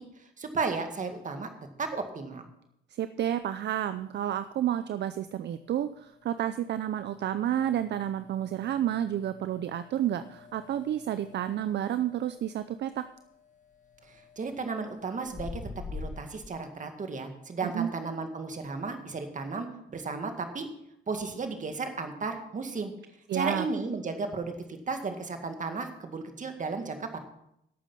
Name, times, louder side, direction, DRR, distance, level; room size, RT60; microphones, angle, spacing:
voice 1, 0.4-1.5 1.8-2.5 14.1-15.6 15.9-20.7 21.1-22.9 23.3-27.2, right 4 dB, 40° right, 6 dB, 2.0 m, -34 dB
voice 2, 2.9-13.0 17.6-17.9 23.3-23.7, right 11 dB, 60° right, 12 dB, 0.6 m, -30 dB
sound 1, 3.3-16.5, left 4 dB, 40° left, 1.7 m, -48 dB
11.5 x 8.4 x 5.6 m, 0.78 s
cardioid pair, 90°, 20 cm